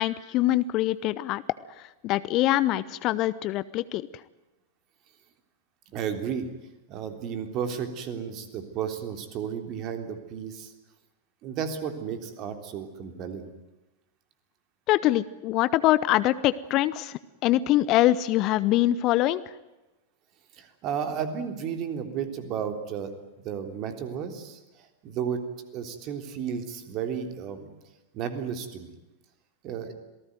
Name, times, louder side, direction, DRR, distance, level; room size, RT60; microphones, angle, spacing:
voice 1, 0.0-1.4 1.8-4.0 14.9-19.4, left 15 dB, 40° left, 18 dB, 0.8 m, -24 dB
voice 2, 5.9-6.5 6.9-10.7 11.4-13.5 20.6-23.1 23.4-24.6 25.0-25.4 25.7-27.7 28.1-28.9 29.6-29.9, right 7 dB, 35° right, 8 dB, 3.5 m, -33 dB
27.0 x 18.5 x 9.3 m, 1.0 s
figure-of-eight pair, 90°, 0 cm